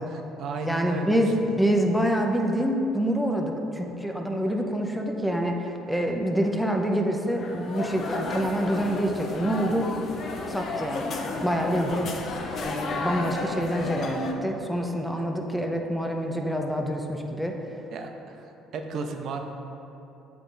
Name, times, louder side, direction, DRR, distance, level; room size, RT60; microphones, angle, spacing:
voice 1, 0.1-1.2 14.8-14.9 17.9-18.5 18.7-19.4, right 4 dB, 60° right, 4 dB, 0.6 m, -34 dB
voice 2, 0.6-9.9 10.5-11.1 11.4-12.1 12.6-17.6, equal, ahead, 2 dB, 0.6 m, -26 dB
sound 1, 7.3-14.3, left 3 dB, 55° left, 0.6 m, -32 dB
8.1 x 3.4 x 3.9 m, 2.9 s
cardioid pair, 95°, 0 cm